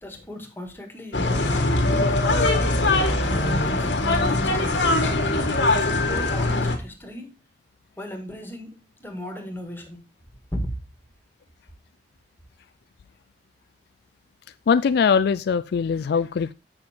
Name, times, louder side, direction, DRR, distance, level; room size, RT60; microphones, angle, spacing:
voice 1, 0.0-2.5 3.2-3.9 4.2-4.9 5.8-7.3 8.0-10.0 10.5-10.6, left 1 dB, 10° left, 1.8 m, -37 dB
sound 1, 1.1-6.8, left 2 dB, 85° left, 1.6 m, -21 dB
voice 2, 14.7-16.5, left 6 dB, 65° left, 0.3 m, -21 dB
7.8 x 5.9 x 4.4 m
head